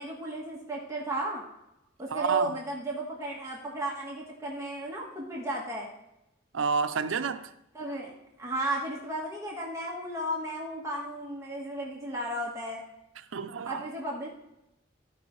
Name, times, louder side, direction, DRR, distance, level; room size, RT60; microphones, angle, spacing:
voice 1, 0.0-1.4 2.0-5.9 7.7-12.8 13.7-14.3, right 1 dB, 15° right, 1.5 m, -34 dB
voice 2, 2.1-2.5 6.5-7.5 13.3-13.9, right 5 dB, 85° right, 0.6 m, -29 dB
14.5 x 5.3 x 3.2 m
head